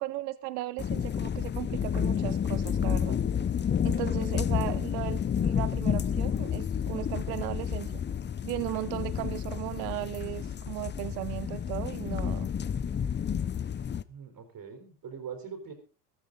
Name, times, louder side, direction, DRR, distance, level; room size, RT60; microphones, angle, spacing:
voice 1, 0.0-3.2 3.8-8.0 8.4-12.5, right 17 dB, 80° right, 16 dB, 0.8 m, -36 dB
sound 1, 0.8-14.0, left 8 dB, 25° left, 0.6 m, -30 dB
voice 2, 14.1-15.7, right 6 dB, 45° right, 5 dB, 4.0 m, -42 dB
14.5 x 13.0 x 3.9 m, 0.35 s
hypercardioid pair, 75°, 48 cm